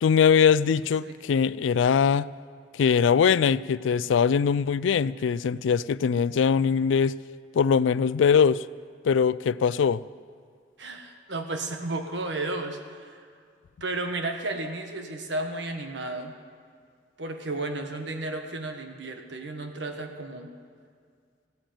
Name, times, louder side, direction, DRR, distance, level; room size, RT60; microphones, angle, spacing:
voice 1, 0.0-2.3 2.7-7.2 7.5-8.7 9.0-10.0, left 6 dB, 90° left, 0.3 m, -22 dB
voice 2, 10.8-13.3 13.8-16.3 17.2-20.5, right 2 dB, 70° right, 1.5 m, -33 dB
15.0 x 9.1 x 9.1 m
head